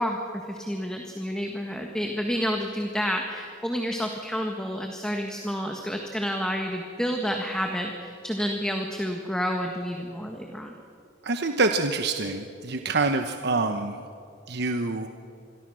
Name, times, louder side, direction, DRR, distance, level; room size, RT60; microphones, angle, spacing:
voice 1, 0.0-10.8, equal, 5° left, 2 dB, 1.5 m, -29 dB
voice 2, 11.2-14.0 14.5-15.1, right 3 dB, 60° right, 6 dB, 1.1 m, -26 dB
27.0 x 22.5 x 6.3 m, 2.6 s
head